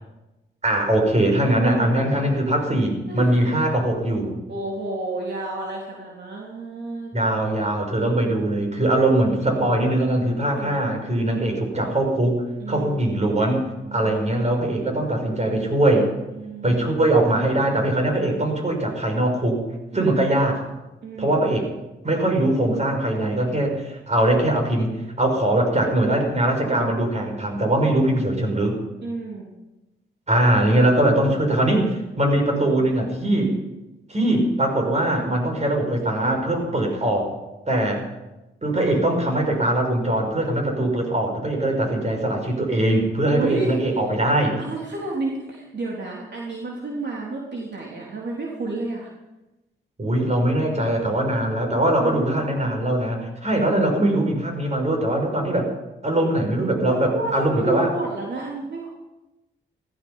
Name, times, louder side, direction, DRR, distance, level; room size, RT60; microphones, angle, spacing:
voice 1, 0.6-4.3 7.1-16.1 16.6-19.6 19.9-20.6 21.2-21.7 22.0-28.8 30.3-33.5 34.1-37.3 37.7-38.0 38.6-44.6 50.0-55.7 56.0-57.9, right 1 dB, 35° right, 2 dB, 6.1 m, -21 dB
voice 2, 4.5-7.3 10.5-10.9 12.6-13.0 13.8-14.3 16.3-17.2 19.9-20.3 21.0-21.4 29.0-29.5 43.3-43.8 44.6-49.1 51.9-52.7 56.9-58.9, right 2 dB, 60° right, -3 dB, 3.5 m, -31 dB
16.5 x 15.0 x 5.7 m, 1.0 s
cardioid pair, 60°, 20 cm